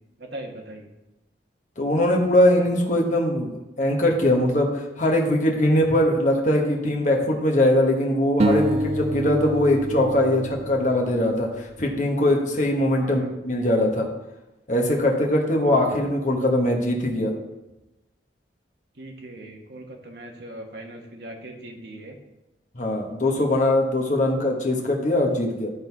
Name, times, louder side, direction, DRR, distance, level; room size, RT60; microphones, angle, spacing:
voice 1, 0.2-0.9 12.9-13.3 15.6-15.8 18.9-22.2, right 1 dB, 55° right, 1 dB, 1.3 m, -40 dB
voice 2, 1.8-14.1 14.7-17.3 22.7-25.7, left 1 dB, 40° left, 0 dB, 1.2 m, -21 dB
sound 1, 8.4-11.6, right 1 dB, 35° right, 0.3 m, -27 dB
11.5 x 3.9 x 4.6 m, 0.99 s
head